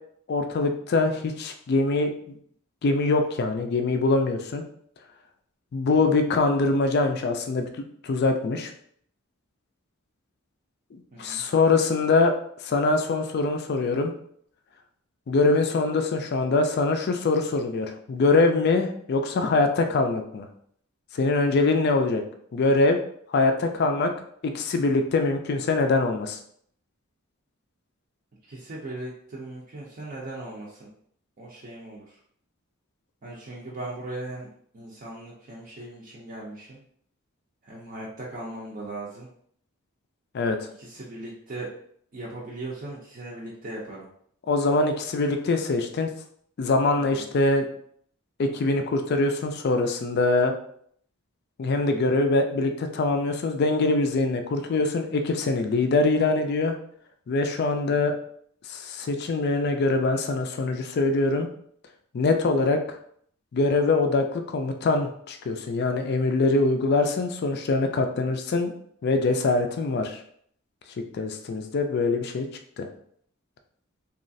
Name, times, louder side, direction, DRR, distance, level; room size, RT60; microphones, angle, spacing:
voice 1, 0.3-2.4 2.8-4.6 5.7-7.7 8.0-8.7 10.9-12.3 12.6-14.1 15.3-20.4 21.1-22.2 22.5-23.0 23.3-24.1 24.4-26.4 40.3-40.6 44.5-46.1 46.6-47.7 48.4-50.5 51.6-56.8 57.3-58.1 58.7-61.5 62.1-62.8 63.5-68.7 69.0-70.2 71.1-72.5 72.8-72.9, left 3 dB, 50° left, 6 dB, 0.3 m, -23 dB
voice 2, 11.1-11.4 28.5-30.9 31.4-32.2 33.2-34.5 34.7-36.8 37.6-39.3 40.7-41.7 42.1-44.1 47.0-47.3, right 2 dB, 40° right, -5 dB, 0.5 m, -38 dB
3.0 x 2.3 x 2.6 m, 0.63 s
head